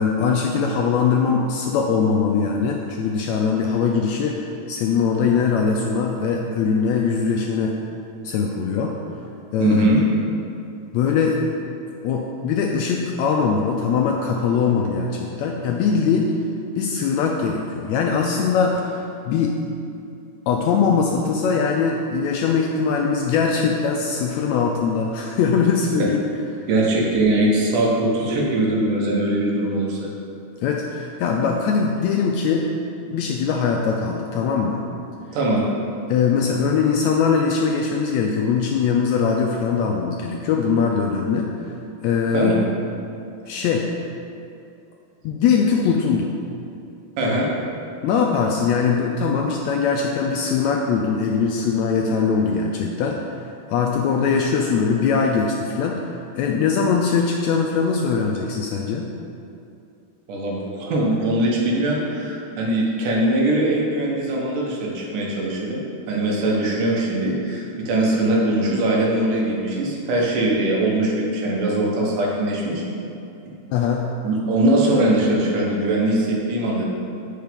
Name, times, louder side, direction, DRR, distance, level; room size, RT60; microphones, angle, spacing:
voice 1, 0.0-7.7 8.2-9.0 9.5-9.8 10.9-11.4 12.0-16.3 16.8-19.6 20.5-26.2 30.6-32.7 33.1-34.8 36.1-41.8 42.0-42.7 43.5-43.9 45.2-46.3 48.0-59.1 73.7-74.1, left 5 dB, 80° left, 1 dB, 1.7 m, -21 dB
voice 2, 9.6-10.0 26.7-30.1 35.3-35.7 42.3-42.5 47.2-47.5 60.3-72.8 73.5-73.6 74.2-76.9, right 1 dB, 90° right, -3 dB, 2.8 m, -21 dB
8.1 x 5.6 x 5.2 m, 2.6 s
omnidirectional pair, 3.5 m